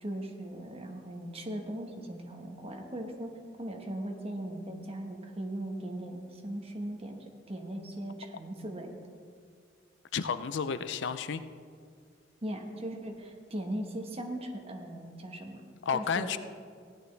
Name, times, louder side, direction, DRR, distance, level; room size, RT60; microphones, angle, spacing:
voice 1, 0.0-3.3 3.6-8.9 12.4-15.6 15.9-16.4, right 1 dB, 30° right, 2 dB, 1.3 m, -39 dB
voice 2, 10.1-11.4 15.8-16.4, left 6 dB, 65° left, 12 dB, 0.5 m, -31 dB
16.0 x 10.0 x 3.4 m, 2.2 s
head